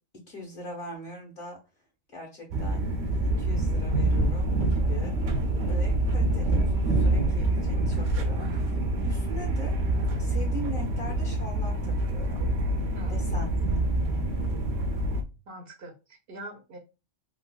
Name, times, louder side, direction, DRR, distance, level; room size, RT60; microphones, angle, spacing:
voice 1, 0.3-1.6 2.1-2.8 3.1-5.2 5.7-9.8 10.2-12.5 13.1-13.5 13.7-13.8, left 1 dB, 45° left, 0 dB, 1.6 m, -41 dB
sound 1, 2.5-15.2, right 1 dB, 85° right, 1.0 m, -26 dB
voice 2, 15.5-16.8, right 1 dB, 60° right, 5 dB, 0.8 m, -43 dB
3.8 x 2.6 x 2.3 m, 0.29 s
omnidirectional pair, 1.3 m